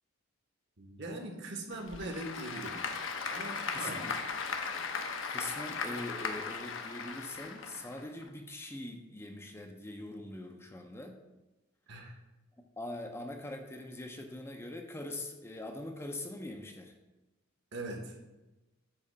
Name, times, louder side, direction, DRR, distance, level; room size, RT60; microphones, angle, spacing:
voice 1, 0.8-2.8 3.3-4.0 11.9-12.1 17.7-18.2, right 2 dB, 55° right, 3 dB, 1.3 m, -41 dB
Applause / Crowd, 1.7-8.3, left 5 dB, 60° left, 0.8 m, -38 dB
voice 2, 3.7-4.2 4.8-11.2 12.6-16.9, left 1 dB, 10° left, 4 dB, 0.5 m, -43 dB
8.8 x 3.2 x 6.5 m, 1.1 s
head